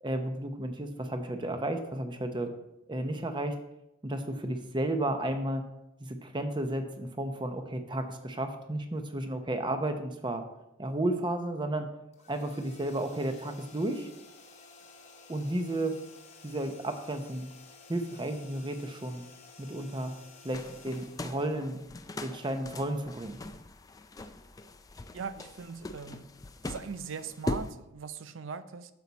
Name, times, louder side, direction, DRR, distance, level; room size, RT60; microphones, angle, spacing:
voice 1, 0.0-2.5 2.9-3.6 4.0-5.6 6.0-10.4 10.8-11.9 12.3-14.1 15.3-15.9 16.4-17.5 17.9-19.2 19.6-20.1 20.4-21.8 22.2-23.4, right 1 dB, 25° right, 0.8 m, -33 dB
sound 1, 12.1-22.1, left 4 dB, 35° left, 1.1 m, -53 dB
sound 2, 20.5-27.7, left 2 dB, 20° left, 0.4 m, -41 dB
voice 2, 25.1-26.3 26.6-28.9, right 5 dB, 80° right, 0.5 m, -40 dB
9.1 x 6.9 x 4.1 m
head